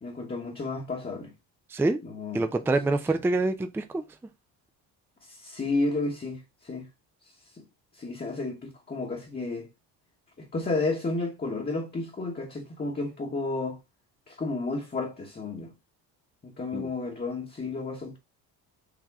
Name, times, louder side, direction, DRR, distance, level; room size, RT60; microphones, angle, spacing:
voice 1, 0.0-1.3 2.0-2.4 5.2-6.9 7.6-7.7 7.9-9.7 10.4-13.8 14.3-15.7 16.4-18.2, left 3 dB, 20° left, 1.1 m, -32 dB
voice 2, 2.3-4.0 16.7-16.9, right 2 dB, 5° right, 0.4 m, -26 dB
4.9 x 2.8 x 3.5 m
supercardioid pair, 75°, 45 cm